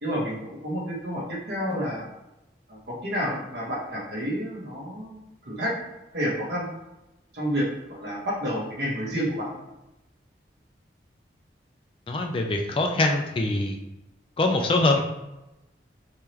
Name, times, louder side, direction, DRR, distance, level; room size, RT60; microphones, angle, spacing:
voice 1, 0.0-2.1 2.7-5.7 6.1-6.7 7.3-7.7 8.0-9.5, equal, 65° right, -4 dB, 1.3 m, -29 dB
voice 2, 12.1-13.8 14.4-15.0, left 2 dB, 30° left, 2 dB, 0.4 m, -23 dB
3.7 x 3.2 x 2.9 m, 0.94 s
head